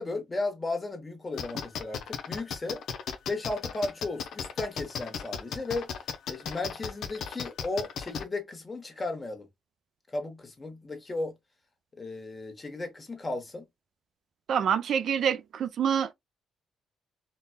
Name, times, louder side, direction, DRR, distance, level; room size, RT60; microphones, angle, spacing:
voice 1, 0.0-2.8 3.3-5.9 6.3-9.5 10.1-11.3 12.0-13.6, left 2 dB, 25° left, 1.0 m, -35 dB
sound 1, 1.4-8.2, left 7 dB, 75° left, 0.6 m, -35 dB
voice 2, 14.5-16.1, right 8 dB, 65° right, 0.4 m, -26 dB
4.0 x 2.2 x 2.2 m
cardioid pair, 90°, 0 cm